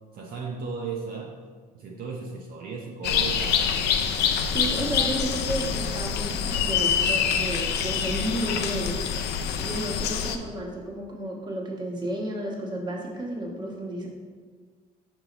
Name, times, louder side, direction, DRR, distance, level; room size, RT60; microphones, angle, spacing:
voice 1, 0.1-1.4 1.7-3.7, right 5 dB, 60° right, -1 dB, 0.7 m, -35 dB
sound 1, 3.0-10.4, left 7 dB, 75° left, 0.5 m, -26 dB
voice 2, 4.5-9.0 9.6-14.1, right 1 dB, 25° right, -2 dB, 1.3 m, -32 dB
5.4 x 4.6 x 3.9 m, 1.5 s
cardioid pair, 110°, 17 cm